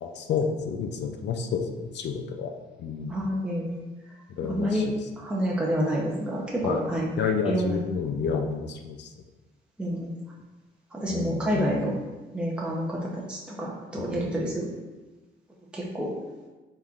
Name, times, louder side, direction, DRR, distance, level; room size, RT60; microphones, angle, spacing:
voice 1, 0.0-2.5 2.8-3.2 4.4-4.8 6.6-6.9 7.2-9.1 11.1-11.8 14.0-14.3, left 6 dB, 60° left, 5 dB, 0.5 m, -30 dB
voice 2, 3.1-3.8 4.5-4.9 5.2-7.1 7.5-7.8 9.8-10.1 10.9-11.9 12.3-14.7 15.7-16.1, equal, 5° right, -4 dB, 0.7 m, -28 dB
4.1 x 3.8 x 2.4 m, 1.2 s
cardioid pair, 90°, 20 cm